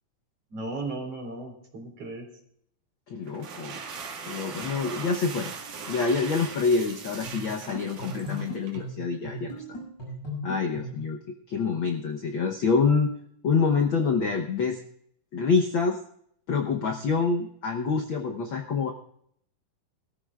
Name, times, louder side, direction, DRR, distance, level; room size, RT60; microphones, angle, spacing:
voice 1, 0.5-2.3, right 2 dB, 50° right, 1 dB, 4.0 m, -36 dB
voice 2, 3.1-3.8 4.3-5.5 5.9-9.6 10.4-11.2 11.5-13.1 13.4-14.8 15.3-16.0 16.5-18.9, left 5 dB, 80° left, 3 dB, 1.1 m, -26 dB
sound 1, 3.3-8.9, right 5 dB, 75° right, 3.3 m, -39 dB
sound 2, 7.2-11.1, equal, 30° left, 7.3 m, -38 dB
21.5 x 14.0 x 2.4 m, 0.66 s
omnidirectional pair, 3.7 m